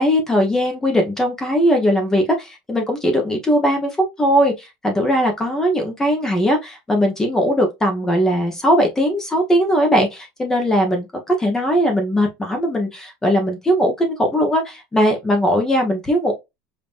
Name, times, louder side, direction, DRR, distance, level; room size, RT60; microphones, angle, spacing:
voice 1, 0.0-16.3, equal, 10° left, 1.0 m, -19 dB
5.5 x 2.9 x 2.5 m
supercardioid pair, 160°, 5 cm